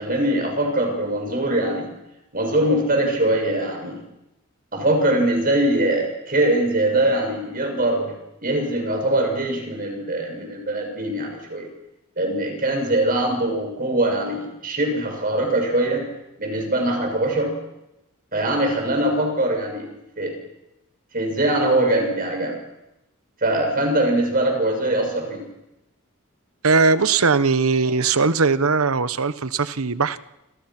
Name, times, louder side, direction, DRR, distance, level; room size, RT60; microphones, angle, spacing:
voice 1, 0.0-1.9 2.3-4.0 4.7-8.1 8.4-11.7 12.2-16.0 16.4-17.5 18.3-19.9 20.2-20.4 21.1-22.6 23.4-25.5, right 1 dB, 40° right, 6.6 m, -22 dB
voice 2, 26.6-30.2, right 4 dB, 75° right, 1.0 m, -19 dB
28.5 x 27.0 x 6.0 m
head